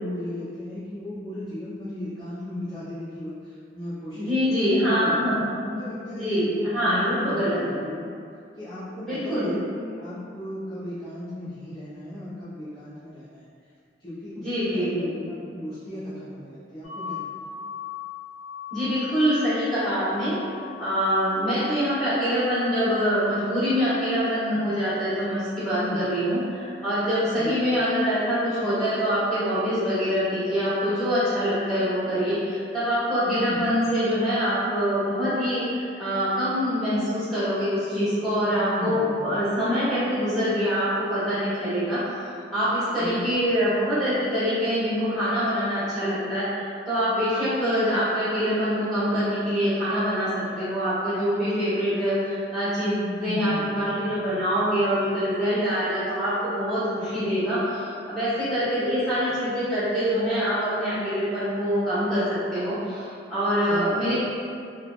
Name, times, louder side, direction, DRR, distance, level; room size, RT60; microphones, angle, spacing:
voice 1, 0.0-4.3 4.6-8.1 8.6-13.4 14.0-17.5 25.7-26.0 27.3-27.6 33.3-33.6 38.5-39.4 43.0-43.4 53.0-54.0 63.6-64.2, left 1 dB, 25° left, -14 dB, 0.6 m, -35 dB
voice 2, 4.1-5.3 6.1-7.6 9.0-9.5 14.4-15.2 18.7-20.4 20.8-42.3 42.5-64.2, equal, ahead, -16 dB, 1.4 m, -25 dB
sound 1, 16.8-28.6, left 8 dB, 50° left, 1.3 m, -42 dB
3.1 x 2.2 x 2.4 m, 2.4 s
head